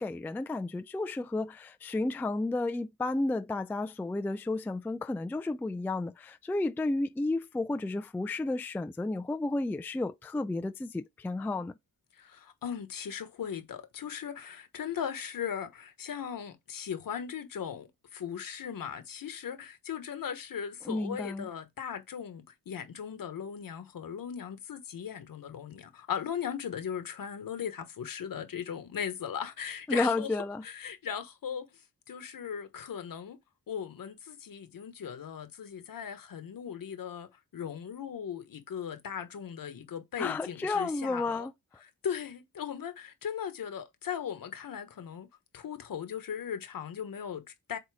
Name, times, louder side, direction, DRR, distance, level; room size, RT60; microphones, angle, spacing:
voice 1, 0.0-11.7 20.9-21.5 29.9-30.6 40.2-41.5, left 2 dB, 5° left, 0.3 m, -32 dB
voice 2, 12.2-30.3 30.6-31.7 32.1-33.4 33.7-41.5 41.8-45.3 45.5-47.8, left 8 dB, 65° left, 1.3 m, -38 dB
8.0 x 2.9 x 4.9 m
wide cardioid pair, 110°, 36 cm